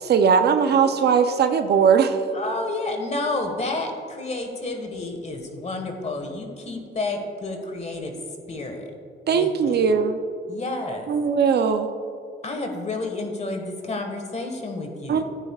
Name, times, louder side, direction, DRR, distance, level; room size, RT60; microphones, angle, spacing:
voice 1, 0.0-2.2 9.3-10.2 11.1-11.9 15.1-15.2, right 6 dB, 55° right, 8 dB, 0.6 m, -19 dB
voice 2, 2.3-8.1 8.5-8.9 9.3-9.9 10.5-11.1 12.4-15.2, left 2 dB, 35° left, 4 dB, 1.5 m, -30 dB
14.5 x 9.1 x 2.4 m, 2.5 s
cardioid pair, 90°, 20 cm